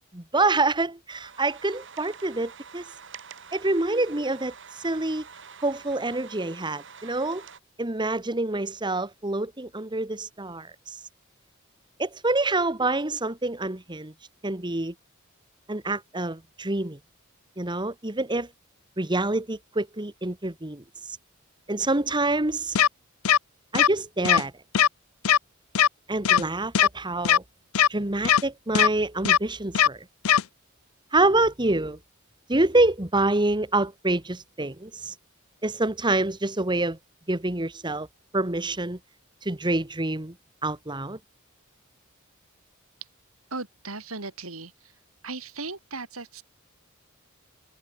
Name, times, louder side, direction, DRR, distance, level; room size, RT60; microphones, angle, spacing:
voice 1, 0.1-2.8 3.5-4.5 4.8-5.3 5.6-7.4 7.8-10.7 12.0-14.1 14.4-14.9 15.7-17.0 17.6-18.5 19.0-20.8 21.7-22.8 23.7-24.5 26.1-27.4 27.9-30.1 31.1-32.0 32.5-35.1 35.6-37.0 37.3-38.1 38.3-39.0 39.4-40.4 40.6-41.2, right 2 dB, 20° right, 1.7 m, -26 dB
sound 1, 1.1-7.6, right 6 dB, 60° right, 6.9 m, -46 dB
sound 2, 22.8-22.9 23.3-23.4 23.8-23.9 24.3-24.4 24.7-24.9 25.3-25.4 25.8-25.9 26.3-26.4 26.8-26.9 27.3-27.4 27.8-27.9 28.3-28.4 28.8-28.9 29.3-29.4 29.8-29.9 30.3-30.4, left 9 dB, 85° left, 0.7 m, -18 dB
voice 2, 43.5-44.9 45.2-46.4, right 3 dB, 80° right, 5.2 m, -37 dB
head